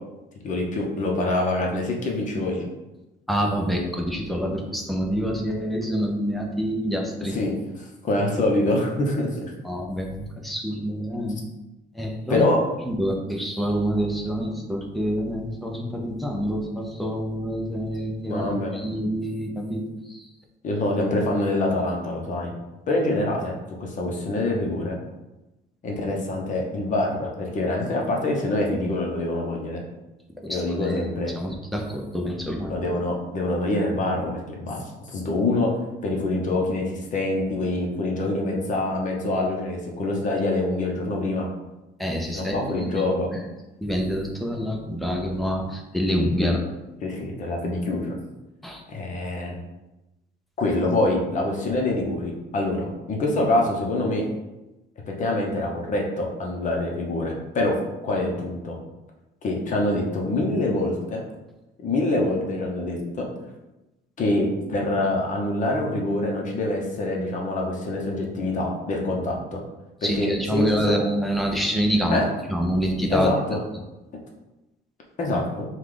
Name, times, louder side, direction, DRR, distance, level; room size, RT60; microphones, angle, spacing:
voice 1, 0.4-2.7 7.3-7.5 8.0-9.5 12.3-12.6 18.3-18.7 20.6-22.5 22.9-25.0 25.8-29.8 30.5-31.3 32.7-35.7 36.0-41.5 42.3-43.3 46.4-46.6 47.0-48.1 48.9-49.6 50.6-54.3 55.2-57.8 58.0-58.8 59.4-61.2 61.8-63.3 64.2-69.6 70.2-70.7 72.1-72.3 73.1-73.6 75.2-75.7, left 2 dB, 45° left, 0 dB, 0.9 m, -25 dB
voice 2, 3.3-7.4 9.6-11.4 11.9-12.5 12.8-20.3 30.4-31.0 31.3-32.7 42.0-42.7 42.9-43.0 43.3-43.4 43.8-46.6 48.6-48.8 70.0-72.2 72.5-73.3, equal, ahead, 0 dB, 0.6 m, -26 dB
4.9 x 2.4 x 3.8 m, 1.0 s
cardioid pair, 145°, 18 cm